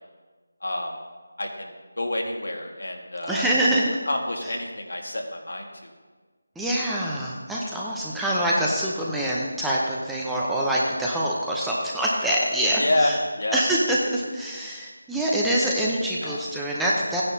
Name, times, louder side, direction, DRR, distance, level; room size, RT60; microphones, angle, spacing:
voice 1, 0.6-0.9 1.4-1.7 2.0-3.5 4.1-5.7 12.8-13.1 13.4-13.6 16.2-16.4, left 1 dB, 75° left, 1 dB, 1.9 m, -27 dB
voice 2, 3.3-4.0 4.4-4.5 6.6-13.2 13.5-17.2, right 1 dB, 5° right, -5 dB, 0.8 m, -25 dB
14.5 x 9.7 x 2.8 m, 1.4 s
figure-of-eight pair, 165°, 0 cm